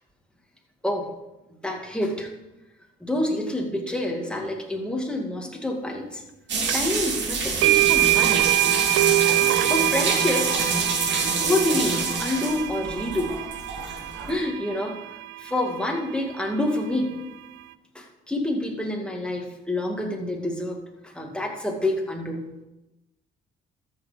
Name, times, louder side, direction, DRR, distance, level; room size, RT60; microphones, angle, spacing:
voice 1, 1.6-2.3 3.0-6.2 6.7-8.6 9.7-10.6 11.2-13.3 14.3-15.0 15.4-17.2 17.9-20.8 21.1-22.4, left 1 dB, 5° left, 1 dB, 2.2 m, -27 dB
sound 1, 6.5-14.3, right 4 dB, 65° right, 2.5 m, -27 dB
sound 2, 6.7-6.8 7.6-15.6, right 18 dB, 90° right, 0.4 m, -24 dB
13.5 x 6.4 x 5.2 m, 0.98 s
cardioid pair, 90°, 20 cm